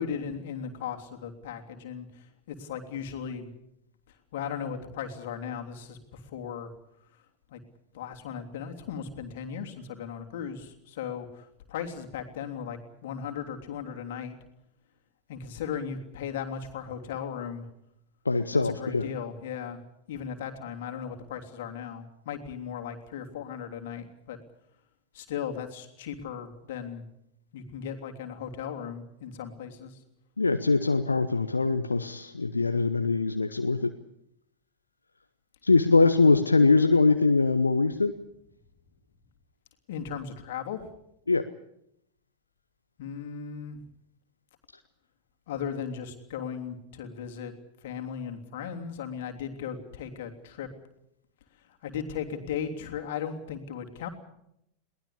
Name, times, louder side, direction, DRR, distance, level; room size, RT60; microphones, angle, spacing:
voice 1, 0.0-3.5 4.3-6.7 7.5-7.6 7.9-14.4 15.3-17.7 18.8-19.8 20.1-24.4 25.1-27.1 27.5-30.0 39.9-40.9 43.0-43.8 45.5-47.5 47.8-50.7 51.8-54.1, left 7 dB, 55° left, 4 dB, 3.2 m, -37 dB
voice 2, 18.2-19.1 30.4-33.9 35.6-38.1 41.3-41.4, left 3 dB, 80° left, 8 dB, 1.0 m, -22 dB
22.0 x 19.0 x 8.5 m, 0.78 s
figure-of-eight pair, 90°, 0 cm